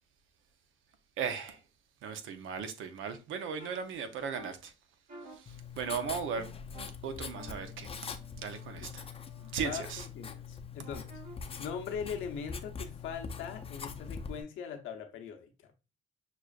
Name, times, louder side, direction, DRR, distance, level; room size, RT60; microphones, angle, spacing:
voice 1, 1.2-1.6 2.0-4.7 5.4-6.4 7.0-7.9 8.4-9.0 9.5-10.1, right 6 dB, 85° right, 0.7 m, -37 dB
sound 1, 3.6-3.7 4.3-4.5 5.1-5.3 5.8-6.0 6.3-6.8 7.3-9.6 10.8-11.3, right 2 dB, 45° right, 1.2 m, -50 dB
Writing, 5.5-14.4, left 6 dB, 30° left, 0.5 m, -43 dB
voice 2, 9.3-9.8 10.1-11.1 11.6-15.7, left 7 dB, 85° left, 0.8 m, -41 dB
6.1 x 2.4 x 2.4 m
cardioid pair, 90°, 20 cm